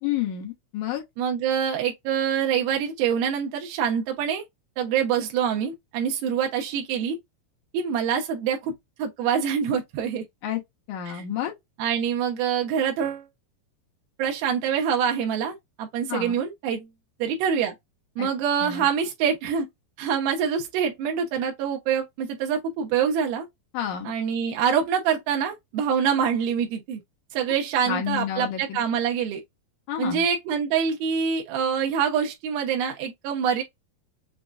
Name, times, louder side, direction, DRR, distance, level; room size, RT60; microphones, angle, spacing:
voice 1, 0.0-1.0 10.4-10.6 10.9-11.5 16.1-16.4 18.2-18.3 18.6-18.9 23.7-24.1 27.8-28.8 29.9-30.3, left 10 dB, 70° left, 2.0 m, -30 dB
voice 2, 1.2-4.4 4.8-7.2 7.7-8.7 9.0-10.3 11.1-11.2 11.8-13.3 14.2-16.9 17.2-17.7 18.2-19.7 20.0-23.5 24.1-27.0 27.3-29.4 30.0-33.6, right 7 dB, 85° right, 2.7 m, -25 dB
6.2 x 2.1 x 2.4 m
omnidirectional pair, 4.3 m